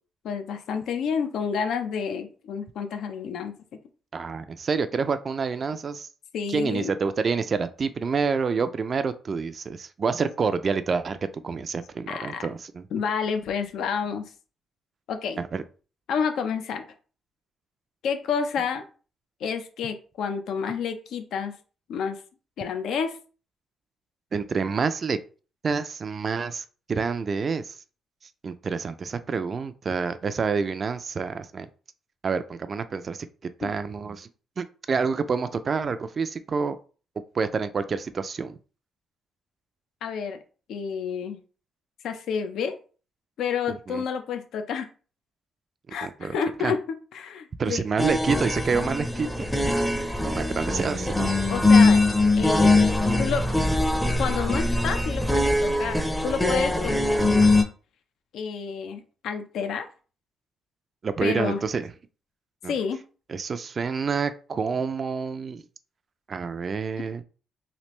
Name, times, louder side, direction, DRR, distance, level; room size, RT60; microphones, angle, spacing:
voice 1, 0.2-3.5 6.3-6.9 12.1-12.5 12.9-14.2 15.1-15.4 16.1-16.9 18.0-18.8 19.4-21.5 21.9-22.2 22.6-23.2 33.6-33.7 40.0-40.4 40.7-41.4 42.0-42.8 43.4-44.9 45.9-46.8 47.1-47.8 51.5-52.0 52.4-52.9 53.2-53.5 54.2-57.5 58.3-59.9 61.2-61.6 62.7-63.0 67.0-67.2, left 6 dB, 75° left, 7 dB, 0.5 m, -29 dB
voice 2, 4.1-6.1 6.5-11.2 11.4-12.8 15.4-15.6 24.3-25.2 25.6-27.8 28.4-31.7 32.2-33.3 33.6-34.3 34.6-36.8 37.3-38.6 43.9-44.0 46.0-46.4 46.6-46.7 47.6-49.5 50.3-51.3 61.0-61.9 62.6-62.7 63.3-65.6 66.3-67.2, right 5 dB, 40° right, 11 dB, 0.3 m, -28 dB
sound 1, 48.0-57.6, left 2 dB, 5° left, 0.6 m, -22 dB
3.2 x 2.5 x 3.0 m, 0.37 s
cardioid pair, 90°, 0 cm